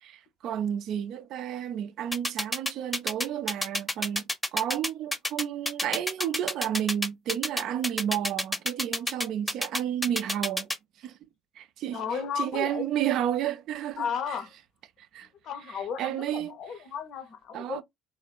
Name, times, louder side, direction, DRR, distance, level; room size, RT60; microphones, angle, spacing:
voice 1, 0.0-4.2 4.5-10.7 11.0-11.2 11.6-14.4 15.1-15.3 15.7-16.6 17.5-17.8, right 10 dB, 55° right, 0.3 m, -31 dB
sound 1, 2.1-10.8, left 1 dB, 10° left, 0.7 m, -28 dB
voice 2, 11.9-12.9 14.0-14.5 15.4-17.8, left 6 dB, 55° left, 0.6 m, -34 dB
3.1 x 2.1 x 2.2 m
figure-of-eight pair, 55°, 0 cm